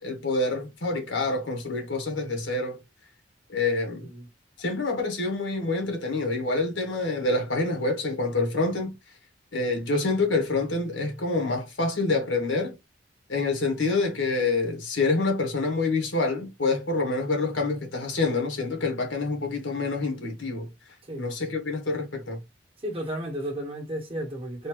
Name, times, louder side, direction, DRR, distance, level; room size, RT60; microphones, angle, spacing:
voice 1, 0.0-2.8 3.5-4.1 4.6-8.9 9.5-12.7 13.3-20.7 21.2-22.4, left 3 dB, 75° left, 1.7 m, -27 dB
voice 2, 22.8-24.7, right 1 dB, 30° right, 1.4 m, -33 dB
4.3 x 2.8 x 3.1 m
head